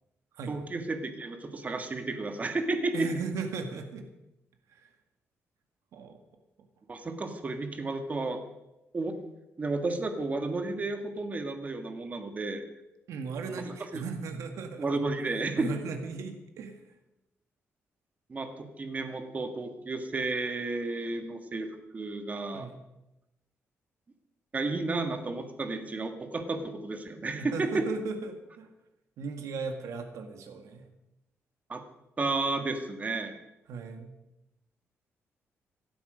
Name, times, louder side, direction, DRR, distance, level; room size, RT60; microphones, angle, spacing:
voice 1, 0.5-3.1 6.9-8.4 8.9-9.2 9.6-12.6 13.5-13.6 13.9-14.0 14.8-15.7 18.3-21.7 21.9-22.7 24.5-27.8 31.7-31.8 32.2-33.3, right 3 dB, 30° right, 7 dB, 1.7 m, -32 dB
voice 2, 2.9-4.1 4.7-4.9 5.9-6.2 13.1-16.8 22.5-22.8 27.3-28.7 29.2-30.9 33.7-34.1, right 4 dB, 90° right, 5 dB, 1.9 m, -37 dB
17.5 x 12.0 x 5.1 m, 0.91 s
cardioid pair, 135°, 5 cm